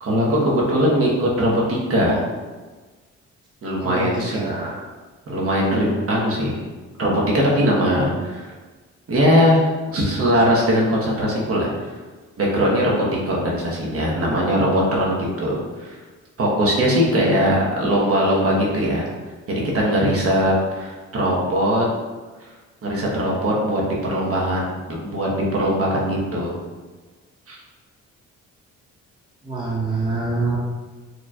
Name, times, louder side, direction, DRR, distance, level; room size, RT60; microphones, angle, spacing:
voice 1, 0.0-2.2 3.6-4.5 5.3-6.6 7.0-8.5 9.1-9.6 9.9-11.7 12.4-16.0 16.4-19.0 19.5-21.9 22.8-26.5 27.5-27.6, equal, 50° right, -4 dB, 1.1 m, -20 dB
voice 2, 3.8-4.7 29.4-30.6, right 3 dB, 15° right, -4 dB, 0.7 m, -25 dB
4.9 x 3.0 x 2.4 m, 1.3 s
cardioid pair, 90°, 30 cm